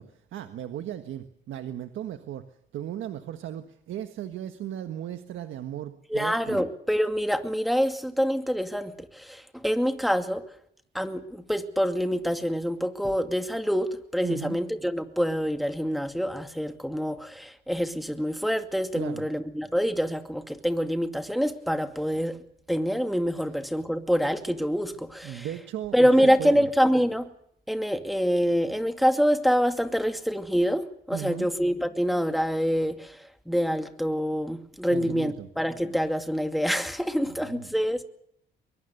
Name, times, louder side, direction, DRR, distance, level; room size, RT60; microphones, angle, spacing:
voice 1, 0.0-6.6 14.2-14.6 18.9-19.3 25.2-26.7 31.1-31.5 34.9-35.5 37.3-37.7, right 11 dB, 80° right, 8 dB, 1.5 m, -36 dB
voice 2, 6.1-10.4 10.9-22.4 22.7-25.5 25.9-27.2 27.7-38.0, equal, ahead, 7 dB, 2.4 m, -26 dB
23.0 x 22.5 x 6.8 m, 0.71 s
cardioid pair, 90°, 20 cm